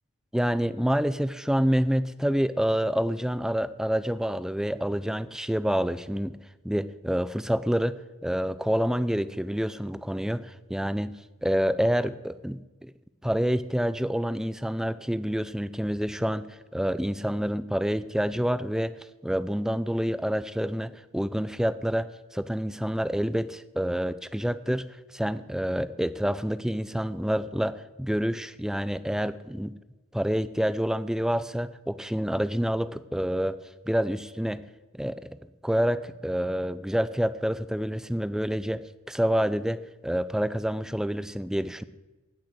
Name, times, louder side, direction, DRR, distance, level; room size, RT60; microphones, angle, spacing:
voice 1, 0.3-6.3 6.6-11.1 11.4-12.9 13.2-19.0 19.2-24.9 25.1-29.7 30.1-33.6 33.9-34.6 34.9-35.3 35.6-38.8 39.1-41.8, equal, ahead, 14 dB, 0.4 m, -27 dB
17.0 x 6.5 x 7.9 m, 1.1 s
head